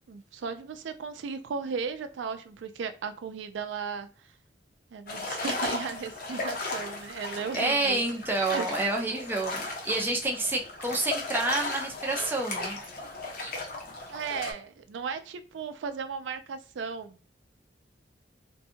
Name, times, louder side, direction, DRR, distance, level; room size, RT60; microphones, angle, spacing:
voice 1, 0.0-4.3 4.9-8.0 8.4-8.9 14.1-17.3, right 5 dB, 80° right, 8 dB, 0.4 m, -36 dB
sound 1, 5.1-14.5, left 2 dB, 50° left, 0.7 m, -36 dB
voice 2, 7.5-12.8 13.4-13.6, right 2 dB, 10° right, 0 dB, 0.4 m, -29 dB
2.6 x 2.2 x 2.7 m, 0.37 s
head